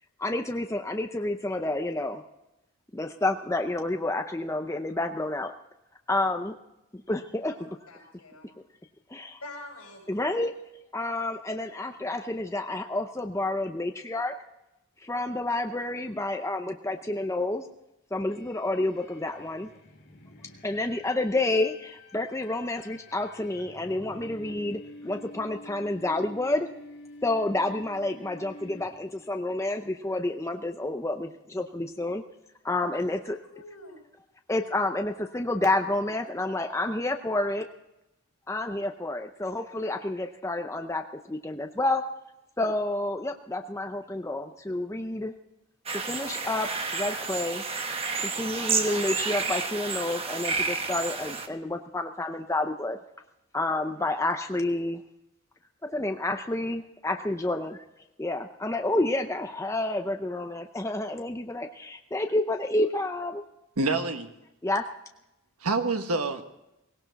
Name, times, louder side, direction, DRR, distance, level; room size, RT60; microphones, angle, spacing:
voice 1, 0.2-2.2 2.9-5.5 6.1-6.5 6.9-7.7 9.1-9.4 10.1-10.5 10.9-14.3 15.0-17.7 18.1-19.7 20.6-26.7 27.2-32.2 32.6-33.4 34.5-37.7 38.5-42.0 42.6-45.3 46.1-47.6 48.2-53.0 53.5-55.0 55.8-57.8 58.2-63.4 64.6-64.9, left 2 dB, 15° left, 5 dB, 0.6 m, -29 dB
voice 2, 7.5-8.5 9.4-10.0 32.9-33.2 33.5-34.0, left 2 dB, 80° left, 1 dB, 5.6 m, -45 dB
sound 1, 18.3-29.3, left 1 dB, 50° left, 2.2 m, -49 dB
sound 2, 45.9-51.5, right 4 dB, 25° right, 1.1 m, -30 dB
voice 3, 63.8-64.3 65.6-66.4, right 3 dB, 85° right, 6 dB, 1.5 m, -26 dB
18.0 x 17.5 x 4.1 m, 0.91 s
head